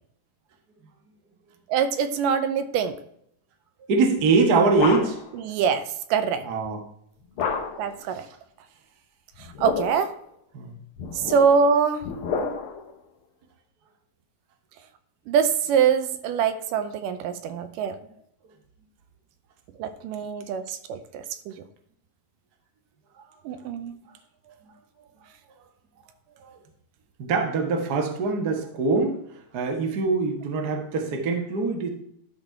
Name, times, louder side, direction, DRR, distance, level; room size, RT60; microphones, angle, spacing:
voice 1, 1.7-3.0 5.4-5.8 6.1-6.4 7.8-8.3 9.6-10.1 11.3-12.0 15.3-18.0 19.8-21.5 23.5-23.9, right 6 dB, 80° right, 10 dB, 2.3 m, -24 dB
voice 2, 3.9-5.2 6.4-6.8 8.1-8.3 10.5-10.7 27.2-29.2 29.5-31.9, right 4 dB, 60° right, 3 dB, 1.0 m, -23 dB
sound 1, 4.2-5.4 7.4-8.0 9.3-10.2 11.0-12.9, left 5 dB, 80° left, 1.2 m, -30 dB
12.0 x 4.1 x 4.5 m, 0.69 s
omnidirectional pair, 3.9 m